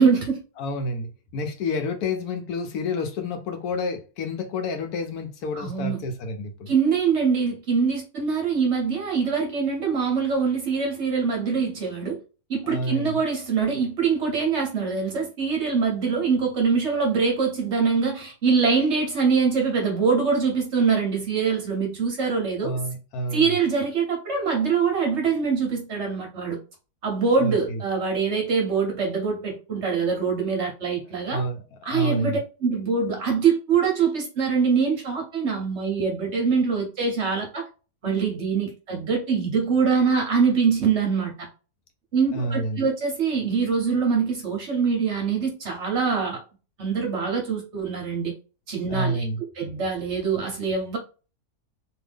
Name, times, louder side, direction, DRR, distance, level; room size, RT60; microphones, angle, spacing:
voice 1, 0.0-0.4 5.6-6.1 6.7-12.2 12.5-22.7 23.3-26.6 27.0-31.4 31.8-37.6 38.0-41.3 42.1-46.4 46.8-48.3 48.7-49.2 49.6-51.0, right 5 dB, 50° right, 0.9 m, -24 dB
voice 2, 0.6-6.7 12.7-13.2 22.6-23.5 27.4-27.8 31.3-32.4 42.3-42.9 48.9-49.4, left 1 dB, 70° left, 1.1 m, -29 dB
2.9 x 2.6 x 3.4 m
omnidirectional pair, 1.8 m